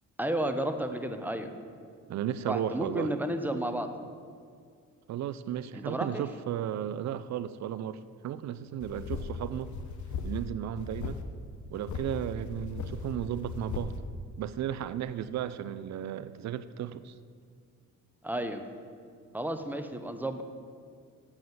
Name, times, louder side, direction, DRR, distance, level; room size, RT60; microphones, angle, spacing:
voice 1, 0.2-1.5 2.5-3.9 5.7-6.2 18.2-18.6 19.3-20.4, right 1 dB, 5° right, 7 dB, 0.8 m, -32 dB
voice 2, 2.1-3.1 5.1-9.7 10.2-11.2 11.7-13.9 14.4-17.1, right 10 dB, 65° right, 14 dB, 0.5 m, -34 dB
sound 1, 8.8-10.5 10.8-11.2 11.7-14.0, left 4 dB, 70° left, 0.9 m, -37 dB
7.7 x 7.2 x 7.9 m, 2.2 s
cardioid pair, 90°, 30 cm